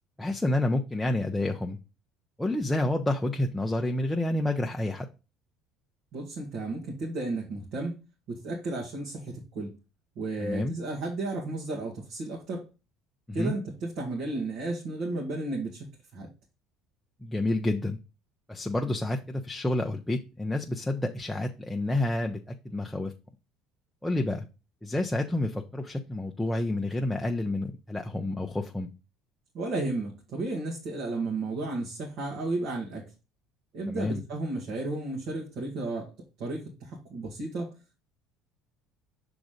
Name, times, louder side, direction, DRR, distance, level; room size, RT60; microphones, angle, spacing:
voice 1, 0.2-1.8 2.4-5.1 10.4-10.7 13.3-13.5 17.2-18.0 18.5-23.1 24.0-24.5 24.8-28.9 33.9-34.2, left 1 dB, 5° left, 2 dB, 0.7 m, -29 dB
voice 2, 6.1-7.9 8.3-9.7 10.2-12.6 13.3-15.9 16.1-16.3 29.5-33.0 33.7-36.1 36.4-37.7, right 2 dB, 65° right, -2 dB, 2.1 m, -33 dB
6.0 x 3.9 x 5.1 m, 0.30 s
supercardioid pair, 95°, 0 cm